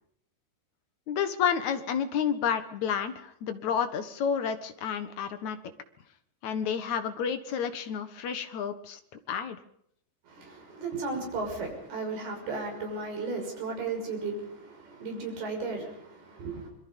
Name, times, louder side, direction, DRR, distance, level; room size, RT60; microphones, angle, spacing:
voice 1, 1.1-5.6 6.4-9.0 9.3-9.6, left 7 dB, 60° left, 9 dB, 2.2 m, -30 dB
voice 2, 10.2-16.7, right 3 dB, 65° right, 1 dB, 8.1 m, -35 dB
26.5 x 22.5 x 5.4 m, 0.68 s
omnidirectional pair, 4.9 m